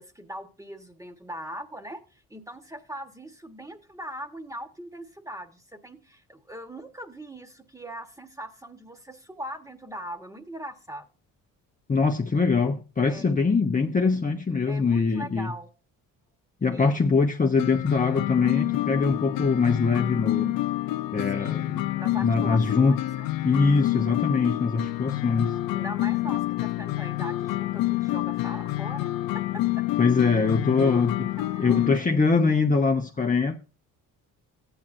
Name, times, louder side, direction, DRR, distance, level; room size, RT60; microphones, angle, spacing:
voice 1, 0.0-11.1 13.1-13.3 14.7-15.7 16.7-17.0 21.2-23.3 24.2-24.3 25.7-29.1 29.3-29.8 30.8-31.0 31.4-32.2, right 1 dB, 10° right, 1.5 m, -41 dB
voice 2, 11.9-15.5 16.6-20.6 21.1-21.6 22.2-23.0 23.4-25.6 30.0-31.3 31.6-33.6, left 4 dB, 20° left, 0.9 m, -23 dB
sound 1, 17.6-32.0, left 16 dB, 70° left, 0.6 m, -28 dB
14.0 x 9.0 x 2.7 m
supercardioid pair, 70°, 36 cm